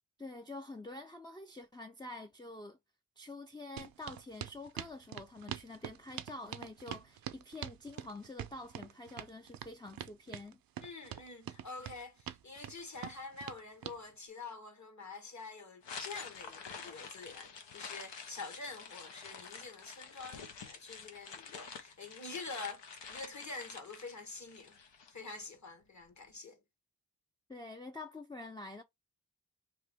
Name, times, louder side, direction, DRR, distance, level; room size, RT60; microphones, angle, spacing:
voice 1, 0.2-2.8 3.2-10.6 27.5-28.8, left 2 dB, 10° left, 0.4 m, -47 dB
sound 1, 3.8-14.0, right 10 dB, 55° right, 0.5 m, -44 dB
voice 2, 10.8-24.8 25.1-26.6, left 3 dB, 45° left, 1.2 m, -47 dB
sound 2, 15.8-25.1, left 5 dB, 90° left, 0.8 m, -48 dB
2.9 x 2.9 x 3.4 m
cardioid pair, 55°, 42 cm